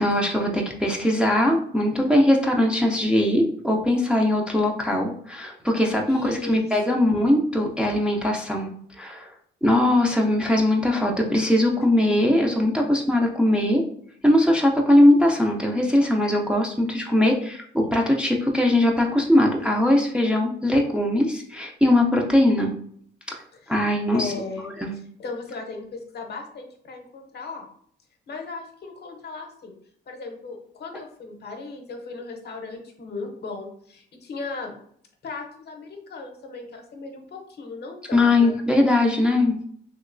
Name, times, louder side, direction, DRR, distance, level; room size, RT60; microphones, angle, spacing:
voice 1, 0.0-8.7 9.0-9.3 9.6-13.8 14.2-22.7 23.3-23.4 23.7-24.3 24.8-24.9 38.1-39.6, left 1 dB, 5° right, 0 dB, 0.4 m, -20 dB
voice 2, 6.1-7.1 23.6-23.7 24.1-27.7 28.3-29.7 30.1-34.8 35.2-38.5, left 3 dB, 55° left, 4 dB, 0.7 m, -37 dB
3.0 x 2.8 x 2.5 m, 0.62 s
cardioid pair, 90°, 20 cm